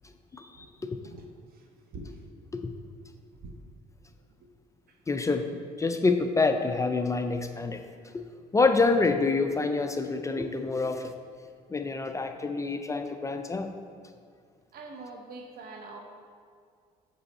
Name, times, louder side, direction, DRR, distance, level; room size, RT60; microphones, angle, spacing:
voice 1, 0.3-1.0 2.6-2.7 5.1-7.8 8.5-11.1 11.7-13.7, left 3 dB, 20° left, 6 dB, 0.4 m, -27 dB
voice 2, 1.0-1.7 1.9-2.2 3.4-3.5 4.4-4.5 4.9-5.0 14.7-16.0, right 2 dB, 65° right, 2 dB, 0.9 m, -44 dB
7.7 x 5.5 x 4.2 m, 2.2 s
cardioid pair, 110°, 17 cm